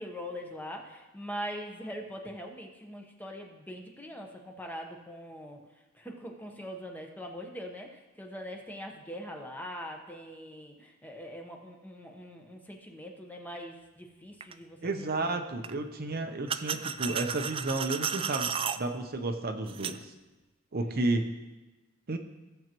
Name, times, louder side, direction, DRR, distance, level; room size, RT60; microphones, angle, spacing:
voice 1, 0.0-5.6 5.9-15.3 20.8-21.1, equal, 10° left, 1 dB, 1.0 m, -42 dB
sound 1, 14.4-14.5 15.6-15.7 16.5-18.8 19.7-20.0, right 7 dB, 25° right, 0.3 m, -33 dB
voice 2, 14.8-18.5 18.8-20.1 20.7-21.3 22.1-22.2, right 2 dB, 50° right, 5 dB, 0.7 m, -32 dB
16.0 x 7.3 x 3.0 m, 1.2 s
head